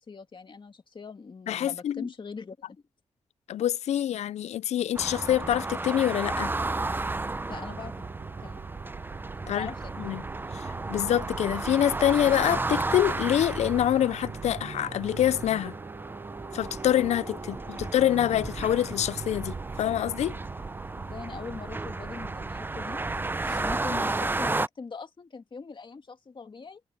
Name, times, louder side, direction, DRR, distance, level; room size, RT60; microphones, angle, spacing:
voice 1, 0.1-2.8 7.5-7.9 8.4-8.6 9.5-10.2 17.7-17.8 21.0-23.0 23.5-26.8, left 4 dB, 45° left, 2.2 m, -41 dB
voice 2, 1.5-2.1 3.5-6.5 9.5-9.7 10.0-10.2 10.5-15.8 16.5-20.4, left 11 dB, 90° left, 0.4 m, -26 dB
sound 1, 4.9-24.7, right 2 dB, 20° right, 0.5 m, -33 dB
sound 2, 6.3-24.3, right 5 dB, 60° right, 3.4 m, -42 dB
cardioid pair, 75°, 11 cm